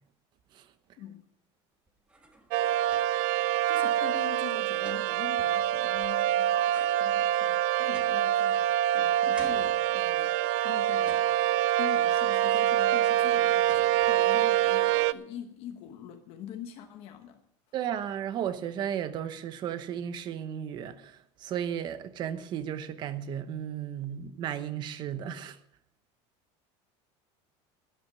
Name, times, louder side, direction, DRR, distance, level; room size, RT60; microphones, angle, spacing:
sound 1, 1.9-3.3 3.7-3.8 4.0-6.3 6.7-8.9 9.4-10.4 10.9-11.8 12.4-12.9 13.3-14.4, right 1 dB, 10° right, 1.4 m, -53 dB
sound 2, 2.5-15.1, right 13 dB, 65° right, 0.5 m, -25 dB
voice 1, 3.6-11.3 11.8-17.4, left 10 dB, 45° left, 1.1 m, -44 dB
voice 2, 17.7-25.6, right 9 dB, 35° right, 1.0 m, -34 dB
12.5 x 11.0 x 6.1 m
cardioid pair, 175°, 14 cm